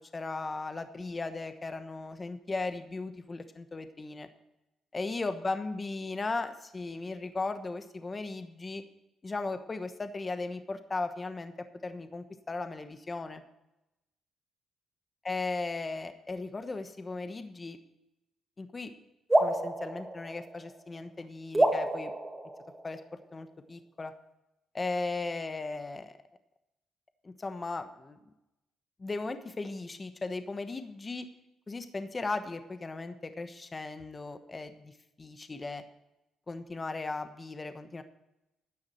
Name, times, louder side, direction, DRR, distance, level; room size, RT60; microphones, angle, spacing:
voice 1, 0.1-4.3 4.9-8.8 9.2-11.5 11.8-13.4 15.2-17.8 18.6-18.9 19.4-22.1 22.8-24.1 24.7-26.2 27.2-28.2 29.0-31.3 31.7-34.9 35.2-35.8 36.5-38.0, left 3 dB, 25° left, 8 dB, 1.1 m, -37 dB
sound 1, 19.3-21.0 21.5-23.2, right 1 dB, 15° right, 2.3 m, -29 dB
14.0 x 9.7 x 4.3 m, 0.92 s
cardioid pair, 105°, 0 cm